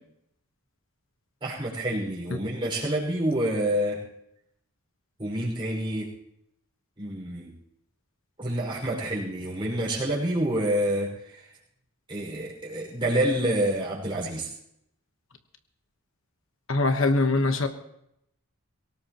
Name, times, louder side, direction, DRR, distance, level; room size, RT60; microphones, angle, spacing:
voice 1, 1.4-4.0 5.2-6.1 7.0-7.5 8.4-11.1 12.1-14.5, right 1 dB, 25° right, -5 dB, 5.3 m, -27 dB
voice 2, 16.7-17.7, left 2 dB, 60° left, 7 dB, 1.2 m, -22 dB
23.5 x 18.0 x 3.0 m, 0.77 s
head